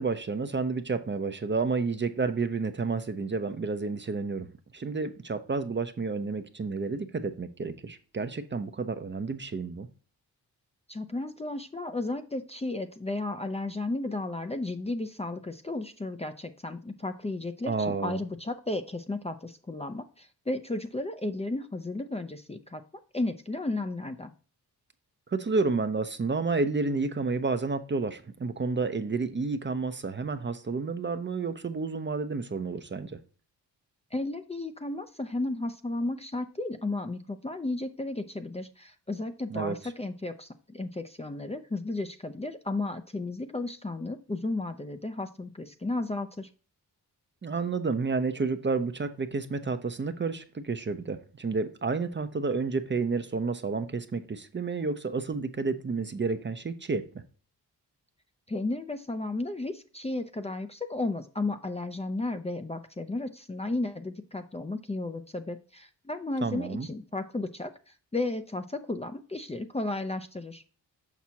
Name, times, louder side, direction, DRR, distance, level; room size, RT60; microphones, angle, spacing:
voice 1, 0.0-4.5 4.7-9.9 17.7-18.2 25.3-33.1 39.5-39.7 47.4-57.1 66.4-66.9, right 4 dB, 30° right, 0.6 m, -30 dB
voice 2, 10.9-22.8 23.1-24.3 34.1-46.5 58.5-70.6, left 2 dB, 15° left, 0.5 m, -34 dB
6.0 x 5.9 x 2.8 m
cardioid pair, 65°, 40 cm